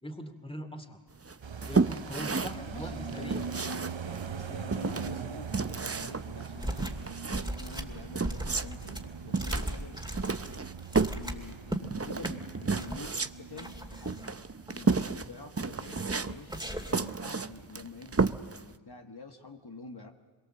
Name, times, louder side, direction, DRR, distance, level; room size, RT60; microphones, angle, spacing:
voice 1, 0.0-1.0 1.7-3.5, equal, 10° left, 7 dB, 2.5 m, -41 dB
sound 1, 1.2-18.7, right 4 dB, 30° right, 0.7 m, -32 dB
sound 2, 1.4-16.5 16.8-16.9 17.2-17.8, right 6 dB, 75° right, 0.8 m, -42 dB
voice 2, 2.3-10.4 11.1-14.3 14.7-20.1, left 3 dB, 55° left, 3 dB, 1.7 m, -47 dB
sound 3, 6.6-7.0 7.3-11.8 12.2-12.3 12.7-13.1 13.6-14.3 14.7-15.3 15.8-16.2 16.5-17.1, right 1 dB, 10° right, 2.6 m, -38 dB
26.0 x 23.0 x 7.6 m, 1.4 s
wide cardioid pair, 40°, 46 cm